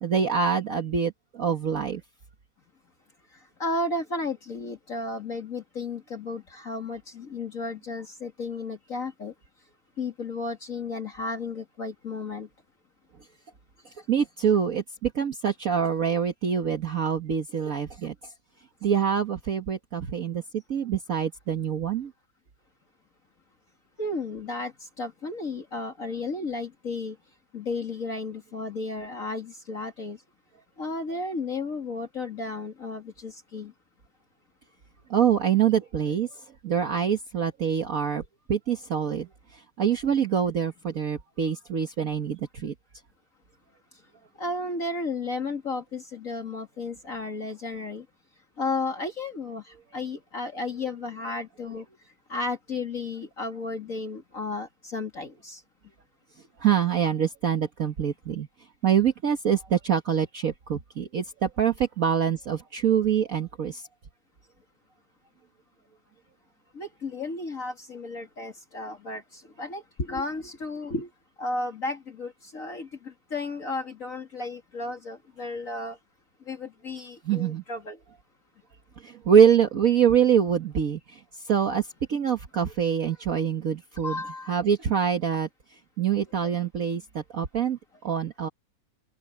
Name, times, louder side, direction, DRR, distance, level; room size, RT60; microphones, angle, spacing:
voice 1, 0.0-2.0 14.1-18.1 18.8-20.4 20.7-22.1 35.1-36.3 36.6-38.2 38.5-39.3 39.8-42.7 56.6-58.5 58.8-63.8 77.2-77.6 79.0-81.2 81.5-84.2 84.5-85.5 86.0-87.8 88.0-88.5, right 8 dB, 50° right, 1.6 m, -25 dB
voice 2, 3.6-9.3 10.0-12.5 24.0-27.2 27.5-30.2 30.8-33.7 44.4-48.0 48.6-49.6 49.9-51.8 52.3-55.6 66.7-71.1 71.4-76.0 76.5-78.0 84.0-84.5 86.4-86.5, left 3 dB, 45° left, 2.7 m, -33 dB
omnidirectional pair, 2.0 m